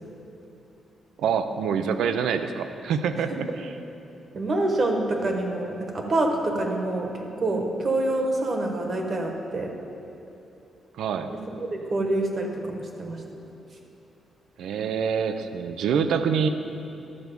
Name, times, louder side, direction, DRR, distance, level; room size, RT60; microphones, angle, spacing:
voice 1, 1.2-3.7 11.0-11.3 14.6-16.5, right 6 dB, 90° right, 9 dB, 0.5 m, -26 dB
voice 2, 3.2-3.6 4.3-9.7 11.3-11.4 11.9-13.2, right 2 dB, 35° right, 2 dB, 1.1 m, -26 dB
12.0 x 4.6 x 6.9 m, 2.8 s
cardioid pair, 160°, 0 cm